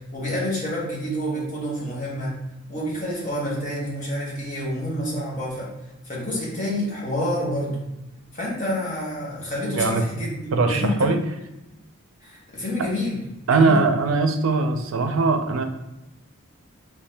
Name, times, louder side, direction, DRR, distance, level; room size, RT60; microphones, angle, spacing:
voice 1, 0.1-2.4 2.7-5.7 6.1-7.8 8.3-11.1 12.2-13.2 13.5-13.8, left 1 dB, 40° left, -5 dB, 1.2 m, -28 dB
voice 2, 10.5-11.2 13.5-15.6, right 3 dB, 75° right, 6 dB, 0.5 m, -20 dB
3.3 x 2.8 x 3.3 m, 0.93 s
head